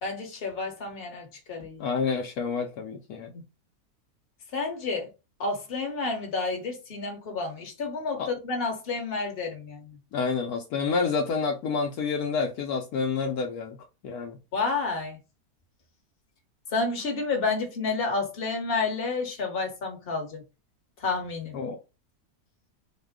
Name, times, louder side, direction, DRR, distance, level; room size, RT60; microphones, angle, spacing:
voice 1, 0.0-1.9 4.5-5.1 5.4-10.0 14.5-15.2 16.7-20.4 21.0-21.6, left 4 dB, 40° left, 1.2 m, -30 dB
voice 2, 1.8-3.4 8.2-8.3 10.1-13.8 14.0-14.4 21.5-21.8, left 5 dB, 75° left, 1.1 m, -28 dB
4.3 x 2.2 x 3.5 m
omnidirectional pair, 1.7 m